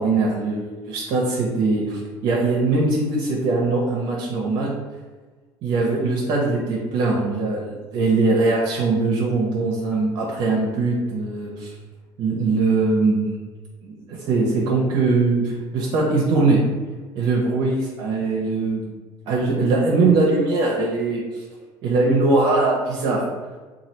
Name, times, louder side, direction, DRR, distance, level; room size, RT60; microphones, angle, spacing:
voice 1, 0.0-4.7 5.6-11.7 12.2-13.3 13.8-16.6 17.1-18.8 19.3-21.2 21.8-23.2, right 3 dB, 70° right, -3 dB, 0.7 m, -21 dB
3.0 x 2.4 x 4.3 m, 1.3 s
cardioid pair, 140°, 9 cm